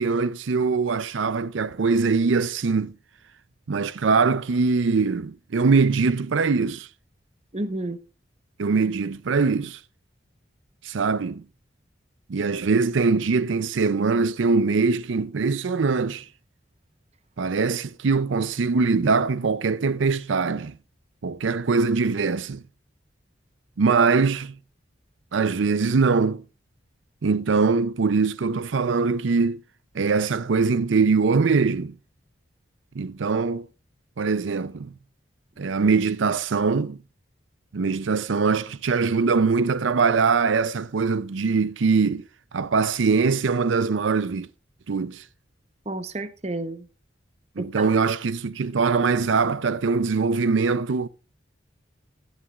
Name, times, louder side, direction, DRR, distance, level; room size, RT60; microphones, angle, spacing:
voice 1, 0.0-2.9 3.7-6.9 8.6-9.8 10.8-11.4 12.3-16.3 17.4-20.7 21.2-22.6 23.8-24.5 25.3-26.4 27.2-29.6 29.9-31.9 33.0-33.7 34.2-34.9 35.6-37.0 37.7-42.2 42.5-44.5 44.9-45.2 47.6-51.1, right 4 dB, 80° right, 0.5 m, -22 dB
voice 2, 7.5-8.0 45.9-46.9 47.6-47.9, right 2 dB, 35° right, 0.9 m, -31 dB
16.5 x 11.5 x 2.4 m
head